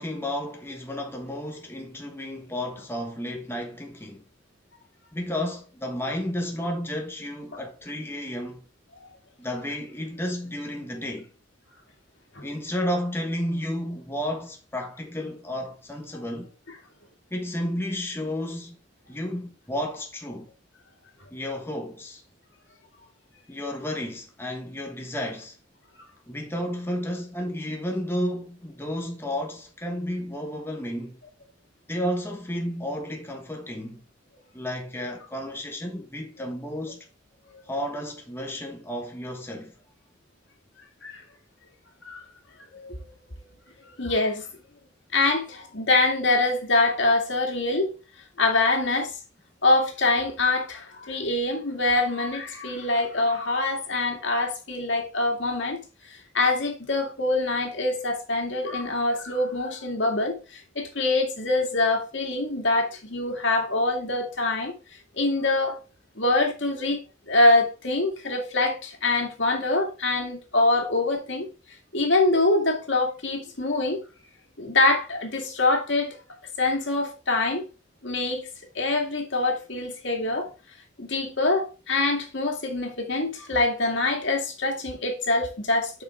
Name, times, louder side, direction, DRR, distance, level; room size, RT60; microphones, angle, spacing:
voice 1, 0.0-4.2 5.1-8.6 9.4-11.3 12.4-16.5 17.3-18.8 19.1-20.5 21.3-22.2 23.5-25.6 26.3-31.2 31.9-34.0 34.5-37.1 37.7-39.7, left 1 dB, 10° left, 1.3 m, -32 dB
voice 2, 43.9-44.5 45.1-47.9 48.4-49.1 49.6-55.8 56.1-64.7 65.1-65.8 66.2-67.0 67.3-71.5 71.9-74.0 74.6-76.1 76.6-77.6 78.0-78.5 78.7-80.5 81.0-86.0, left 2 dB, 65° left, 2.3 m, -24 dB
7.7 x 6.0 x 3.6 m
head